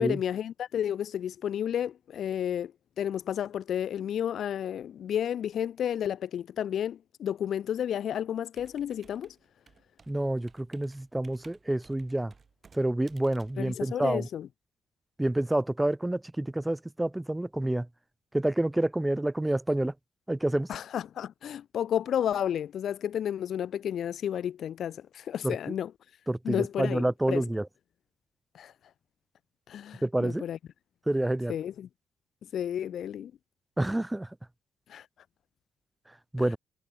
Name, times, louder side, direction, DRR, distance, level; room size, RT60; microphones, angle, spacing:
voice 1, 0.0-2.7 3.0-9.3 13.6-14.5 20.7-25.9 26.4-27.4 28.5-28.7 29.7-30.6 31.5-31.9 32.5-33.3 34.9-35.1, left 9 dB, 60° left, 0.3 m, -31 dB
Computer keyboard, 8.5-14.5, right 5 dB, 30° right, 7.5 m, -59 dB
voice 2, 10.1-12.3 12.7-14.3 15.2-17.9 18.3-19.9 20.3-20.7 25.4-25.6 26.3-27.7 30.0-30.4 31.1-31.5 33.8-34.3 36.3-36.6, right 1 dB, 10° right, 0.5 m, -28 dB
cardioid pair, 145°, 0 cm